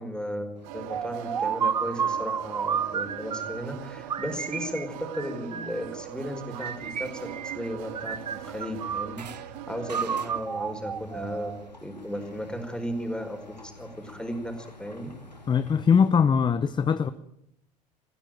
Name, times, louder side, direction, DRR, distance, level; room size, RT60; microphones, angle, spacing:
voice 1, 0.0-15.1, equal, 5° left, 4.8 m, -35 dB
sound 1, 0.5-16.1, left 2 dB, 90° left, 2.4 m, -51 dB
sound 2, 0.6-10.4, right 16 dB, 55° right, 1.1 m, -41 dB
sound 3, 0.9-3.7 4.1-5.9 6.5-7.7 7.9-9.4 9.9-11.7, right 7 dB, 80° right, 0.8 m, -31 dB
voice 2, 15.5-17.1, left 6 dB, 20° left, 0.8 m, -21 dB
22.0 x 15.5 x 9.1 m
figure-of-eight pair, 65°, 21 cm